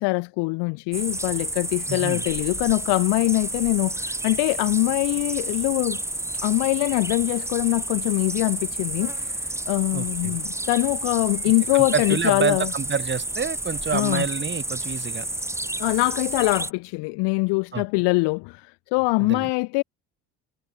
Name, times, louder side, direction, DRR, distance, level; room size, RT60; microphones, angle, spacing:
voice 1, 0.0-6.0 6.4-9.1 9.7-12.7 13.9-14.2 15.8-19.8, left 27 dB, 60° left, 0.8 m, -23 dB
sound 1, 0.9-16.7, right 1 dB, 5° right, 1.6 m, -30 dB
voice 2, 1.9-2.2 9.9-10.4 11.4-15.3 17.7-17.8 19.2-19.5, right 6 dB, 25° right, 1.2 m, -28 dB
figure-of-eight pair, 55°, 47 cm